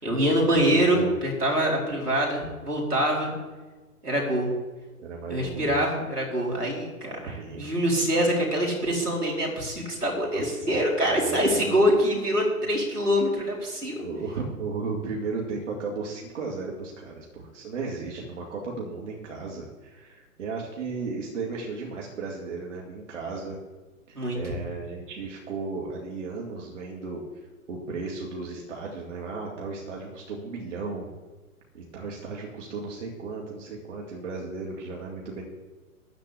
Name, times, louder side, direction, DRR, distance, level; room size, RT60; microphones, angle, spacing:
voice 1, 0.0-3.3 4.0-4.5 5.3-14.0 24.1-24.4, equal, 85° right, -2 dB, 4.6 m, -25 dB
voice 2, 0.5-1.1 5.0-5.8 7.2-7.6 10.1-10.8 11.0-11.8 14.0-23.6 24.1-27.2 27.7-31.1 31.7-35.4, right 4 dB, 50° right, -2 dB, 2.4 m, -35 dB
13.5 x 5.2 x 8.5 m, 1.2 s
figure-of-eight pair, 130°, 45 cm